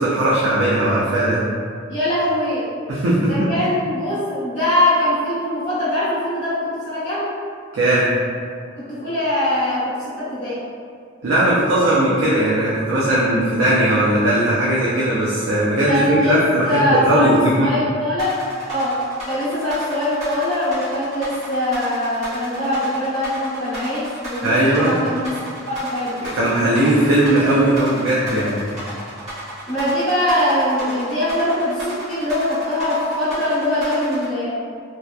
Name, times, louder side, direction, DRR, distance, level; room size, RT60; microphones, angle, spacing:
voice 1, 0.0-1.4 2.9-3.5 7.7-8.1 11.2-17.7 24.4-24.9 26.2-28.6, right 1 dB, 75° right, -7 dB, 0.4 m, -18 dB
voice 2, 1.9-2.7 3.3-7.3 8.8-10.6 15.8-18.3 18.6-19.0 19.3-25.3 25.6-26.1 29.7-34.6, left 1 dB, 40° left, -14 dB, 0.9 m, -22 dB
sound 1, 18.2-34.3, right 1 dB, 35° right, 0.8 m, -34 dB
2.7 x 2.1 x 2.2 m, 2.1 s
head